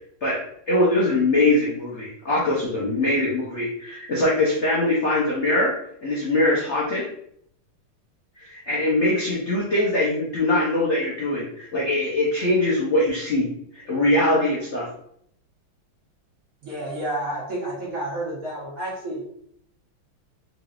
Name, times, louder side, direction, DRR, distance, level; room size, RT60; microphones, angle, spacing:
voice 1, 0.2-5.7 6.0-7.1 8.4-13.5 13.7-14.9, left 1 dB, 85° left, -6 dB, 0.6 m, -22 dB
voice 2, 16.6-19.2, right 1 dB, 45° right, -6 dB, 1.3 m, -30 dB
3.9 x 3.0 x 2.4 m, 0.70 s
omnidirectional pair, 2.3 m